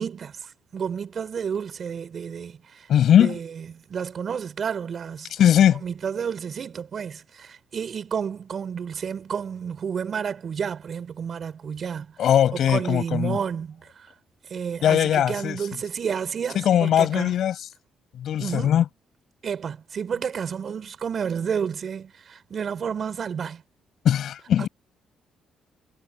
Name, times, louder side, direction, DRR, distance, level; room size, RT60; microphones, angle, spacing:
voice 1, 0.0-2.9 3.2-5.3 5.8-12.1 12.5-13.8 14.5-17.4 18.4-18.8 19.4-23.6 24.6-24.7, right 7 dB, 50° right, 4.9 m, -31 dB
voice 2, 2.9-3.4 5.4-5.8 12.2-13.4 14.8-15.6 16.5-17.5 18.2-18.8 24.0-24.7, left 10 dB, 70° left, 7.9 m, -19 dB
cardioid pair, 90°, 0 cm